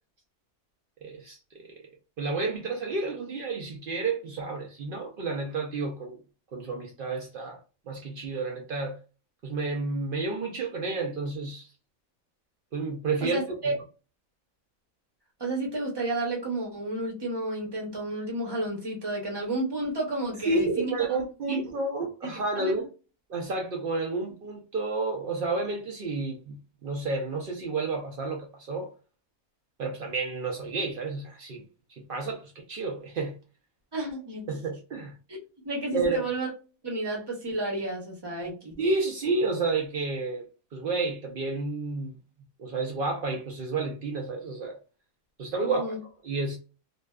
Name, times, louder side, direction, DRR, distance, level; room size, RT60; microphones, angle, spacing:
voice 1, 1.0-1.8 2.2-6.2 6.5-7.6 7.9-9.0 9.4-11.7 12.7-13.4 13.6-13.7 20.4-22.9 23.3-28.9 29.8-33.3 34.5-35.2 35.9-36.2 38.8-40.4 40.7-42.2 42.6-44.8 45.4-46.6, right 3 dB, 90° right, 0.4 m, -30 dB
voice 2, 13.2-13.7 15.4-21.1 21.5-21.6 22.6-22.7 33.9-34.5 35.3-35.4 35.6-36.5 36.8-38.7 45.6-46.0, right 2 dB, 25° right, 0.6 m, -31 dB
2.5 x 2.2 x 2.2 m
omnidirectional pair, 1.5 m